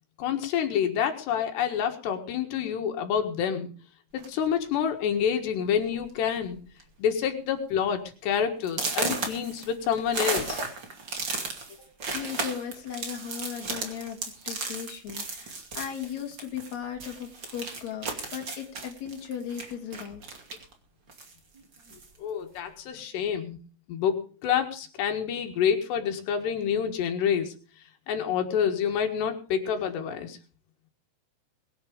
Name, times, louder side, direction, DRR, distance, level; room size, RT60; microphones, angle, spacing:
voice 1, 0.2-3.7 4.1-6.6 7.0-10.6 22.2-23.6 23.9-27.5 28.1-30.4, left 8 dB, 85° left, 5 dB, 3.9 m, -28 dB
sound 1, 4.2-4.5 5.3-5.4 5.8-6.1 6.4-6.8 7.2-7.3 7.8-7.9 8.7-16.7 17.0-20.7 21.1-22.1, right 3 dB, 35° right, 2.5 m, -34 dB
voice 2, 11.7-14.2 14.4-20.2 21.9-22.0, left 8 dB, 45° left, 2 dB, 3.5 m, -37 dB
22.5 x 8.0 x 5.1 m, 0.37 s
omnidirectional pair, 4.7 m